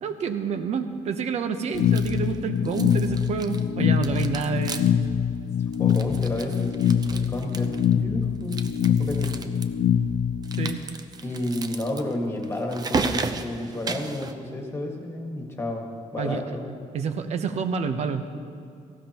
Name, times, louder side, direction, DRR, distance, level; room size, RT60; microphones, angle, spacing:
voice 1, 0.0-5.0 10.6-10.8 16.2-16.4 16.9-18.3, right 6 dB, 55° right, 8 dB, 0.9 m, -28 dB
sound 1, 1.7-10.7, left 8 dB, 85° left, 0.5 m, -24 dB
sound 2, 1.7-2.4 2.6-3.7 4.0-5.1 5.3-5.4 5.7-7.9 8.4-9.6 10.4-14.3, right 4 dB, 30° right, 0.6 m, -34 dB
voice 2, 5.8-9.5 11.2-16.8, left 1 dB, 20° left, 1 dB, 1.7 m, -31 dB
18.0 x 15.5 x 3.0 m, 2.4 s
cardioid pair, 155°, 13 cm